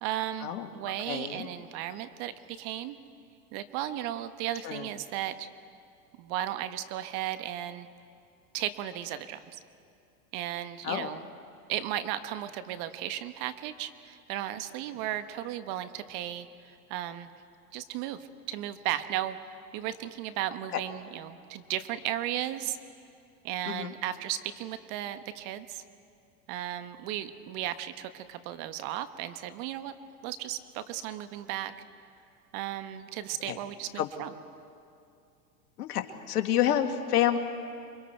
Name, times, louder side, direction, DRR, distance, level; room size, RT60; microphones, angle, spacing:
voice 1, 0.0-3.0 3.5-5.5 6.2-7.9 8.5-9.6 10.3-11.3 11.7-17.3 17.7-18.2 18.5-22.8 23.4-25.8 26.5-29.9 30.2-31.7 32.5-34.3, right 12 dB, 50° right, 11 dB, 1.3 m, -35 dB
voice 2, 1.1-1.5 4.6-4.9 10.8-11.1 20.7-20.8 23.7-23.9 33.4-33.6 33.9-34.1 35.8-37.4, left 11 dB, 80° left, 7 dB, 1.7 m, -28 dB
28.0 x 23.5 x 4.5 m, 2.5 s
hypercardioid pair, 110°, 45 cm